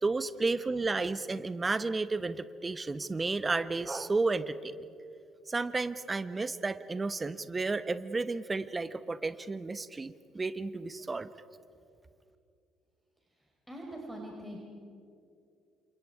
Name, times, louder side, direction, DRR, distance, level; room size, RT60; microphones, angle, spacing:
voice 1, 0.0-4.8 5.5-11.3, right 3 dB, 25° right, 14 dB, 1.1 m, -32 dB
voice 2, 13.7-14.6, right 1 dB, 10° right, -1 dB, 4.6 m, -42 dB
30.0 x 27.5 x 4.9 m, 2.5 s
hypercardioid pair, 50°, 0 cm